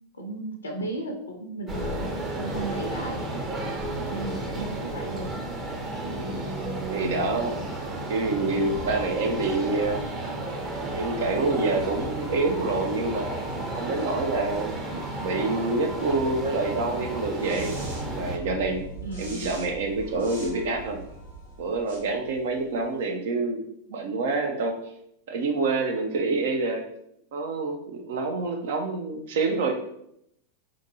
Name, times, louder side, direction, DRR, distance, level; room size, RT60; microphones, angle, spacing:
voice 1, 0.1-3.2 4.1-5.4 19.0-19.5, right 2 dB, 75° left, 2 dB, 0.5 m, -35 dB
sound 1, 1.7-18.4, right 2 dB, 20° right, 0.6 m, -33 dB
voice 2, 6.1-6.4 6.9-7.6 8.1-10.1 10.9-13.3 13.7-14.8 15.2-17.9 18.1-18.8 19.2-21.0 21.6-23.6 23.9-24.8 25.3-26.9 27.3-29.7, right 3 dB, 55° right, 4 dB, 0.4 m, -27 dB
sound 2, 10.6-23.0, equal, 80° right, 1.3 m, -41 dB
3.8 x 2.5 x 2.7 m, 0.75 s
figure-of-eight pair, 90°, 0 cm